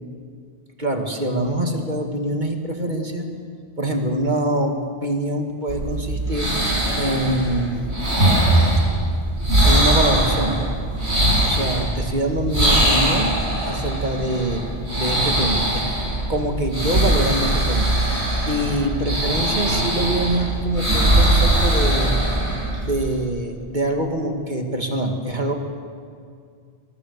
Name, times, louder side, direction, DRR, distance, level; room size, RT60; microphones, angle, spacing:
voice 1, 0.8-3.3 3.8-6.5 7.0-7.9 9.6-10.7 11.4-13.4 13.7-14.7 14.9-15.9 16.3-17.9 18.5-22.2 22.8-25.5, right 1 dB, 45° right, 3 dB, 2.2 m, -24 dB
sound 1, 5.7-23.2, right 1 dB, 85° right, 7.4 m, -21 dB
23.0 x 22.5 x 6.7 m, 2.2 s
omnidirectional pair, 1.1 m